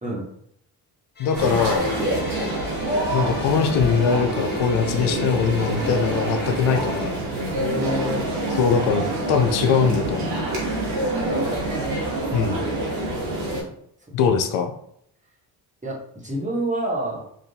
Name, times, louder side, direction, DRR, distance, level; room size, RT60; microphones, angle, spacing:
voice 1, 1.2-1.9 3.1-7.2 8.6-10.4 12.3-12.6 14.1-14.7, left 6 dB, 65° left, 5 dB, 0.6 m, -22 dB
sound 1, 1.2-7.1, left 3 dB, 20° left, 0.7 m, -37 dB
sound 2, 1.3-13.6, right 1 dB, 80° right, 1.2 m, -26 dB
voice 2, 7.5-8.3 11.2-11.8 15.8-17.2, right 1 dB, 15° right, -4 dB, 1.2 m, -28 dB
3.7 x 2.4 x 2.7 m, 0.70 s
supercardioid pair, 55°, 49 cm